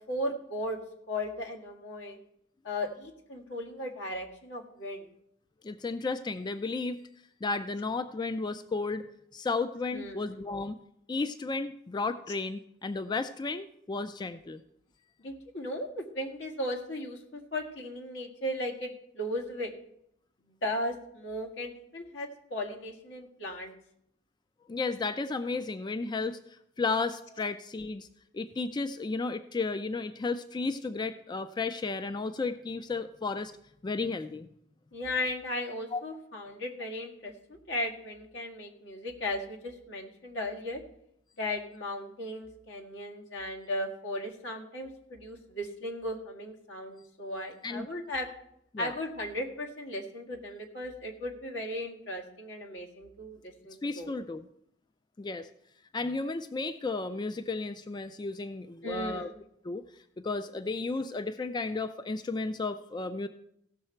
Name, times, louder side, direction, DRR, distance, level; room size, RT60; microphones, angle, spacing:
voice 1, 0.1-0.8 1.1-2.2 2.6-5.0 9.9-10.3 15.2-19.7 20.6-23.7 27.4-27.5 34.9-40.8 41.4-48.3 48.8-54.1 58.8-59.3, left 1 dB, 80° left, 0 dB, 1.8 m, -36 dB
voice 2, 5.6-7.0 7.4-9.1 9.3-10.7 11.1-14.6 24.7-28.1 28.3-33.5 33.8-34.5 35.9-36.0 47.6-47.9 48.7-48.9 53.8-54.5 55.2-55.5 55.9-59.3 59.6-59.8 60.2-63.3, left 3 dB, 25° left, 10 dB, 0.3 m, -33 dB
16.0 x 6.5 x 4.4 m, 0.75 s
head